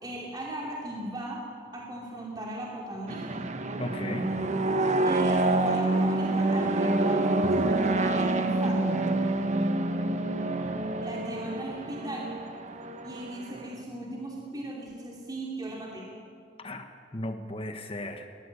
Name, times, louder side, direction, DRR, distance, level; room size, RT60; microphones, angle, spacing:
voice 1, 0.0-1.5 1.7-3.5 5.0-9.0 11.0-12.3 13.0-16.1, right 1 dB, 25° right, -3 dB, 2.9 m, -37 dB
sound 1, 3.1-13.8, right 2 dB, 40° right, 1.2 m, -27 dB
voice 2, 3.8-4.4 16.6-18.3, left 1 dB, 30° left, 6 dB, 1.4 m, -36 dB
23.5 x 18.0 x 8.4 m, 2.3 s
head